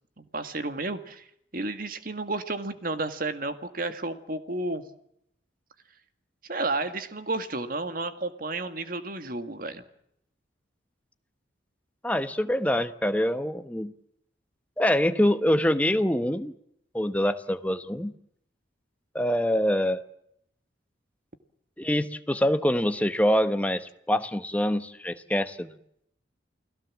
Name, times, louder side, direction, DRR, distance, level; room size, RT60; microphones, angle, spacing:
voice 1, 0.2-1.3 1.5-4.8 6.5-9.8, right 2 dB, 50° right, 9 dB, 1.9 m, -32 dB
voice 2, 12.0-13.9 14.8-16.5 16.9-18.1 19.1-20.0 21.8-25.8, equal, 5° left, 9 dB, 1.0 m, -25 dB
29.5 x 18.0 x 7.4 m, 0.75 s
head